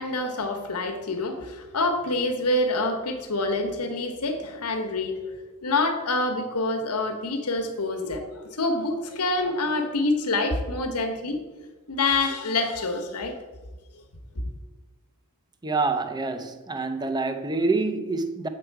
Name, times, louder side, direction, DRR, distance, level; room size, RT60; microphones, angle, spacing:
voice 1, 0.0-5.3 5.6-8.2 8.5-11.4 11.9-13.3, left 2 dB, 90° left, 1.1 m, -26 dB
voice 2, 15.6-18.5, right 3 dB, 20° right, 0.5 m, -26 dB
7.7 x 4.8 x 4.6 m
head